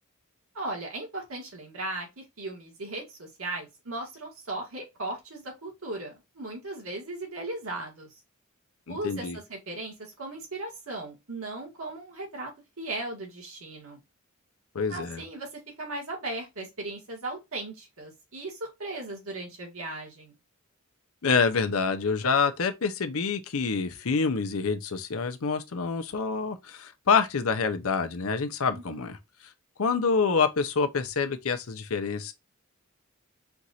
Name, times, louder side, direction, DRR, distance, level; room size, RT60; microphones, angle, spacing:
voice 1, 0.5-8.1 8.9-12.5 12.8-14.0 14.9-20.3 28.7-29.1, right 2 dB, 70° right, 2.0 m, -37 dB
voice 2, 8.9-9.4 14.7-15.2 21.2-29.2 29.8-32.3, left 5 dB, 70° left, 0.7 m, -27 dB
4.6 x 2.6 x 4.1 m
head